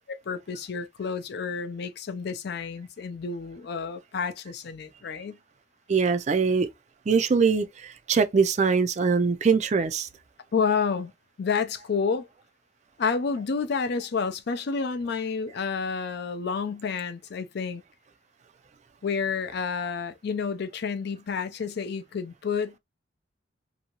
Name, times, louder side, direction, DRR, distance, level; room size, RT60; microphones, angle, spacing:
voice 1, 0.1-5.4 10.5-11.1 11.4-12.3 13.0-17.8 19.0-22.8, left 5 dB, 60° left, 0.4 m, -29 dB
voice 2, 5.9-6.7 7.1-10.1, right 5 dB, 40° right, 0.3 m, -22 dB
2.7 x 2.7 x 2.8 m
head